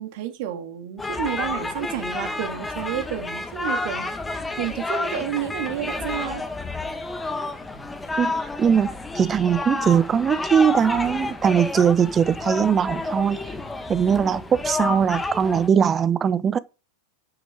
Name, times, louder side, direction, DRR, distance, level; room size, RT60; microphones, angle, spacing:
voice 1, 0.0-4.1 4.6-6.4, right 11 dB, 50° right, 2.2 m, -30 dB
sound 1, 1.0-15.7, left 3 dB, 10° left, 1.3 m, -30 dB
voice 2, 8.6-8.9 9.2-13.4 13.9-16.6, right 7 dB, 20° right, 0.6 m, -20 dB
8.9 x 6.7 x 5.0 m
figure-of-eight pair, 90°, 0 cm